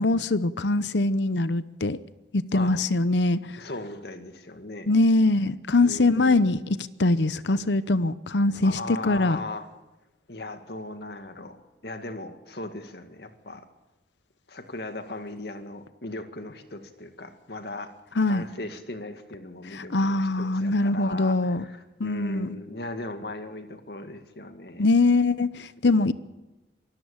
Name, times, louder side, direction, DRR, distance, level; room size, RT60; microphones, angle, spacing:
voice 1, 0.0-2.0 2.3-3.4 4.9-9.4 18.2-18.4 19.9-21.6 22.0-22.5 24.8-26.1, left 2 dB, 85° left, 15 dB, 0.8 m, -23 dB
voice 2, 3.6-4.9 5.8-6.4 8.6-9.7 10.3-11.6 11.8-13.7 14.5-17.9 18.3-24.9 25.8-26.0, left 2 dB, 65° left, 7 dB, 2.1 m, -38 dB
24.5 x 14.0 x 8.8 m, 1.0 s
head